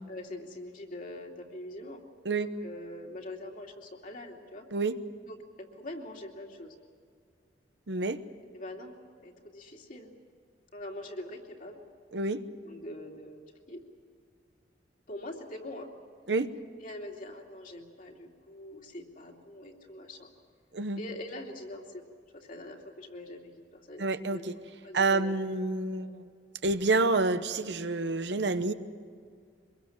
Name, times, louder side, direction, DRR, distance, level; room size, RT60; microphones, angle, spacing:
voice 1, 0.0-2.0 2.3-4.7 5.3-6.7 8.5-10.1 10.7-11.8 12.6-13.4 13.7-13.8 15.1-15.9 16.8-20.3 21.0-22.0 22.3-24.4 24.8-25.4 26.0-26.2, left 1 dB, 50° left, 0 dB, 2.8 m, -43 dB
voice 2, 7.9-8.2 12.1-12.4 16.3-16.5 20.7-21.0 24.0-24.5 24.9-26.1 26.6-28.7, right 3 dB, 80° right, 10 dB, 1.0 m, -28 dB
24.5 x 22.0 x 7.3 m, 2.1 s
head